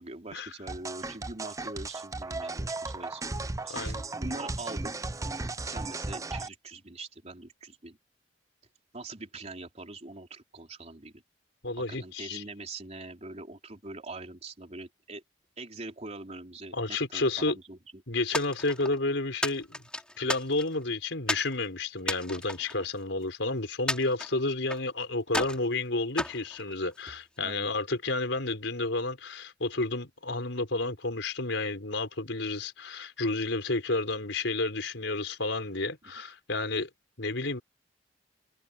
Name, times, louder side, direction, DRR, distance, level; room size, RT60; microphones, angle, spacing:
voice 1, 0.0-3.2 3.6-4.9 5.6-8.0 8.9-11.2 11.9-15.2 15.6-17.8 27.4-27.7, right 2 dB, 40° right, 3.6 m, -43 dB
sound 1, 0.7-6.5, right 2 dB, 20° right, 0.6 m, -35 dB
voice 2, 3.7-4.0 11.6-12.4 16.7-17.6 18.1-19.8 20.2-36.9 37.2-37.6, left 2 dB, 85° left, 4.5 m, -31 dB
sound 2, 18.3-19.0 19.4-20.8 21.3-21.5 22.0-23.3 23.9-24.9 25.3-25.7 26.2-27.2, left 1 dB, 5° left, 2.6 m, -34 dB
head